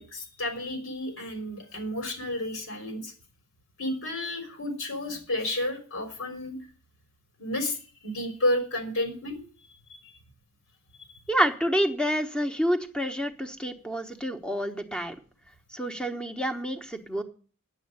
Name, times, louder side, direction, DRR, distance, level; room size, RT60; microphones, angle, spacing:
voice 1, 0.0-3.1 3.8-6.5 7.4-7.8 8.0-9.4 9.9-10.1, left 1 dB, 80° left, 4 dB, 3.8 m, -31 dB
voice 2, 11.3-15.1 15.7-17.2, equal, 5° left, 7 dB, 1.1 m, -28 dB
9.6 x 7.9 x 7.8 m, 0.41 s
head